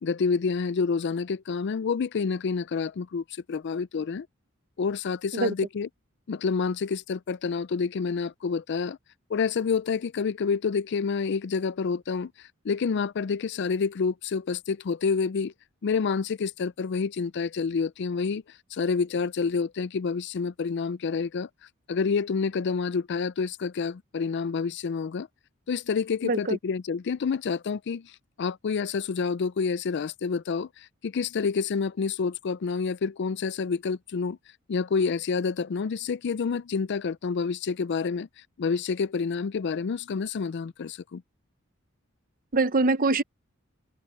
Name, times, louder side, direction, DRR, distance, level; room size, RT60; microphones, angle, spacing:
voice 1, 0.0-4.3 4.8-5.9 6.3-9.0 9.3-15.5 15.8-18.4 18.7-21.5 21.9-25.3 25.7-28.1 28.4-34.4 34.7-38.3 38.6-41.2, left 5 dB, 55° left, 0.4 m, -28 dB
voice 2, 26.2-26.6 42.5-43.2, right 3 dB, 45° right, 0.9 m, -23 dB
head